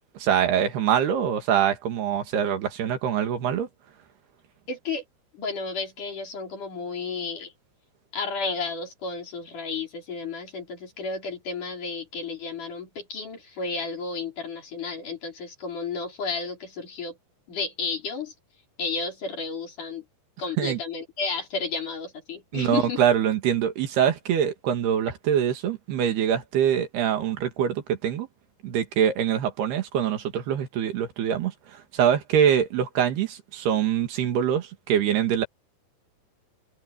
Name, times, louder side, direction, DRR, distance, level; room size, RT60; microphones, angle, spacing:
voice 1, 0.2-3.7 20.6-20.8 22.5-28.3 28.6-31.5 31.9-35.5, right 9 dB, 85° right, 4.2 m, -24 dB
voice 2, 4.7-5.0 5.3-7.5 8.1-17.2 17.5-18.3 18.8-20.0 20.4-23.0, left 4 dB, 50° left, 6.4 m, -32 dB
omnidirectional pair, 4.5 m